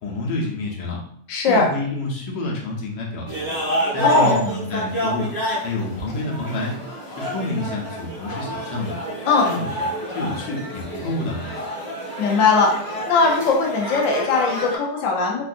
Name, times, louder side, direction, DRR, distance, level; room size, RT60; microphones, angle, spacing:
voice 1, 0.0-1.0 1.5-3.7 3.9-5.3 5.6-6.8 7.1-9.0 9.4-9.7 10.1-11.5, left 2 dB, 90° left, -2 dB, 1.4 m, -28 dB
voice 2, 1.3-1.7 4.0-4.4 9.3-9.5 12.2-12.7 13.1-15.4, left 4 dB, 60° left, -1 dB, 0.9 m, -19 dB
sound 1, 3.3-14.8, equal, 15° left, 0.8 m, -29 dB
3.6 x 2.3 x 2.5 m, 0.63 s
omnidirectional pair, 1.8 m